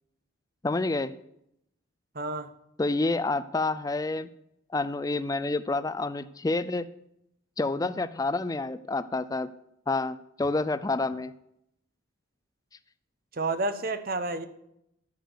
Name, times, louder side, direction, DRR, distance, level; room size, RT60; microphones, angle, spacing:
voice 1, 0.6-1.1 2.8-4.3 4.7-6.8 7.6-9.5 9.9-11.3, left 3 dB, 15° left, 12 dB, 0.3 m, -28 dB
voice 2, 2.1-2.5 13.3-14.5, right 2 dB, 45° right, 11 dB, 0.8 m, -30 dB
11.5 x 6.6 x 6.6 m, 0.78 s
head